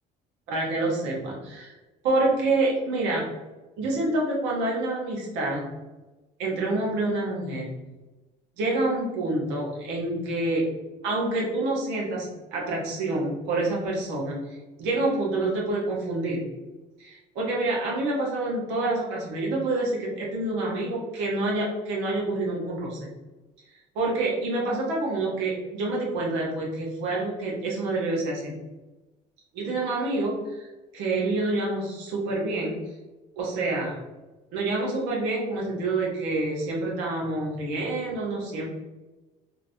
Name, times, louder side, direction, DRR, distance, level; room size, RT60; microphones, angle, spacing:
voice 1, 0.5-1.7 2.0-3.3 3.8-5.7 6.4-7.7 8.6-10.7 11.0-14.4 14.8-16.5 17.0-23.1 23.9-28.6 29.5-32.8 33.4-34.0 34.5-38.7, right 2 dB, 85° right, -3 dB, 0.8 m, -27 dB
3.2 x 2.0 x 2.5 m, 1.1 s
supercardioid pair, 90°, 18 cm